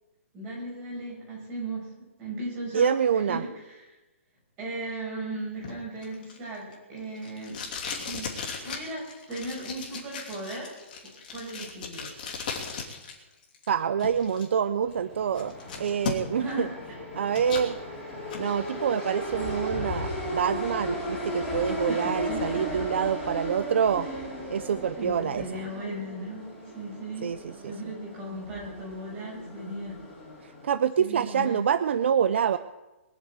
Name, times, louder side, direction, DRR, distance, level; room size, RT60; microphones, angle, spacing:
voice 1, 0.3-1.9 2.2-3.4 3.6-4.0 4.6-7.6 7.9-8.3 8.6-10.7 11.0-12.1 16.4-16.7 21.9-22.6 24.0-24.2 25.0-26.5 26.7-27.3 27.6-30.0 31.0-31.6, right 1 dB, 20° right, -4 dB, 6.0 m, -36 dB
voice 2, 2.7-3.4 13.7-16.7 17.1-17.8 18.4-24.1 24.5-25.4 27.2-27.7 30.4-32.6, right 7 dB, 55° right, 13 dB, 0.5 m, -26 dB
Packing tape duct tape, 5.6-13.1 13.4-14.4 14.9-15.0 15.3-16.5 16.9-17.7 18.1-18.4, left 5 dB, 35° left, 2.9 m, -37 dB
sound 1, 14.8-30.7, equal, 5° left, 3.8 m, -36 dB
21.5 x 7.2 x 8.1 m, 1.1 s
hypercardioid pair, 175°, 8 cm